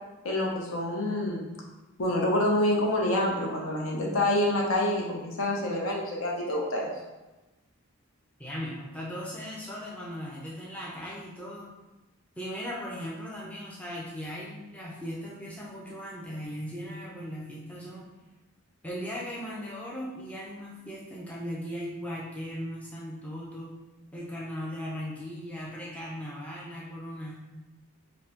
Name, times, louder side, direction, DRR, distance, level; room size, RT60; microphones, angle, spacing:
voice 1, 0.2-1.5 2.0-6.9, left 1 dB, 65° left, -1 dB, 0.7 m, -27 dB
voice 2, 8.4-11.7 12.4-18.0 18.8-23.7 24.1-27.3, equal, 5° left, -5 dB, 0.4 m, -38 dB
5.2 x 2.1 x 2.9 m, 1.1 s
head